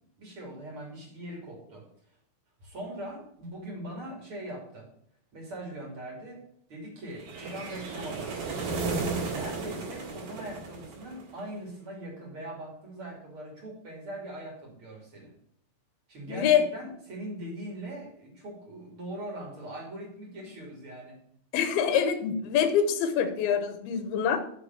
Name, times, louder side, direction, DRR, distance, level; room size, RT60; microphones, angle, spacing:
voice 1, 0.2-1.9 2.6-4.9 5.3-6.4 6.7-8.3 9.3-15.3 16.1-21.2, right 1 dB, 35° right, -1 dB, 3.2 m, -41 dB
sound 1, 7.2-11.4, right 4 dB, 65° right, 3.9 m, -34 dB
voice 2, 16.3-16.6 21.5-24.4, left 8 dB, 80° left, 8 dB, 2.7 m, -25 dB
7.3 x 6.7 x 7.2 m, 0.68 s
omnidirectional pair, 4.6 m